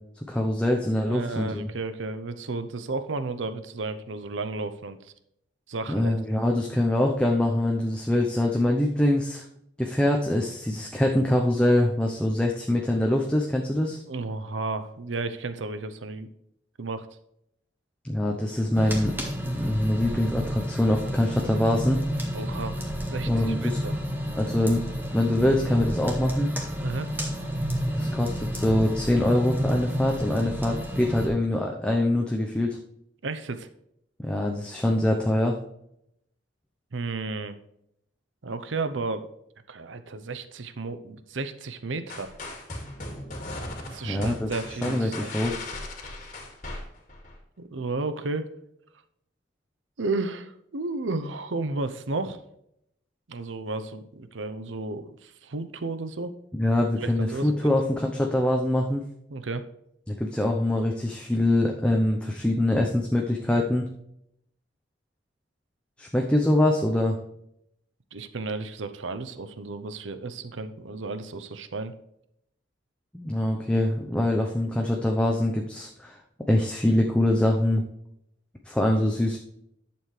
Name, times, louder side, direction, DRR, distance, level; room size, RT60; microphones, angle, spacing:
voice 1, 0.3-1.7 5.9-9.4 9.8-14.0 18.0-22.0 23.2-23.8 24.4-24.8 25.1-26.5 27.9-32.8 34.2-35.6 44.0-44.5 44.8-45.6 56.5-59.0 60.1-63.9 66.0-67.2 73.1-76.2 76.5-77.8 78.7-79.4, left 1 dB, 5° left, 0 dB, 0.7 m, -24 dB
voice 2, 1.0-5.1 5.7-6.1 14.1-16.3 16.8-17.1 22.3-24.0 26.8-27.1 33.2-33.7 36.9-37.6 38.4-39.3 39.7-42.3 43.9-45.3 47.6-48.5 50.0-52.4 53.3-56.3 57.0-57.7 59.3-59.6 68.1-71.9, right 3 dB, 85° right, 11 dB, 0.7 m, -33 dB
sound 1, 18.7-31.3, equal, 10° right, 1.7 m, -31 dB
sound 2, 42.1-47.4, left 2 dB, 40° left, 2.2 m, -37 dB
11.0 x 7.0 x 3.3 m, 0.77 s
head